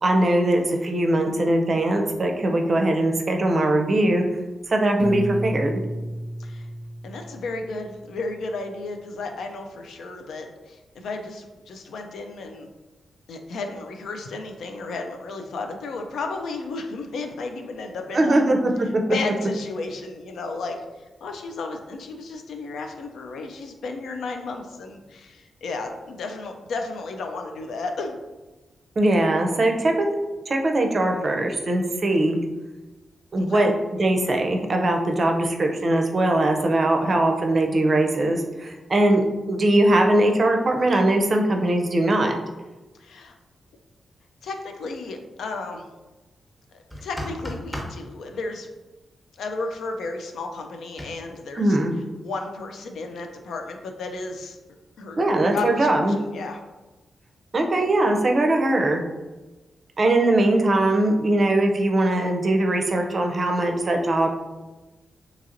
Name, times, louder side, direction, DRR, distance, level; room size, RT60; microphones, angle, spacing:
voice 1, 0.0-4.2 4.7-5.8 18.1-19.0 29.0-30.1 30.5-32.4 33.3-33.7 34.0-42.3 51.6-52.0 55.2-56.2 57.5-59.0 60.0-64.3, right 1 dB, 45° right, 3 dB, 0.5 m, -21 dB
Piano, 5.0-7.9, equal, 45° left, 0.7 m, -32 dB
voice 2, 7.0-12.7 13.3-18.4 19.1-20.8 21.2-28.2 33.4-33.7 43.0-43.3 44.4-45.8 46.7-48.7 49.4-51.8 52.2-54.6 55.0-55.2 55.5-55.9 56.2-56.6, left 3 dB, 85° left, 4 dB, 0.4 m, -33 dB
sound 1, 46.9-48.0 51.0-51.1, equal, 5° left, 0.8 m, -33 dB
2.8 x 2.8 x 2.5 m, 1.1 s
cardioid pair, 70°, 0 cm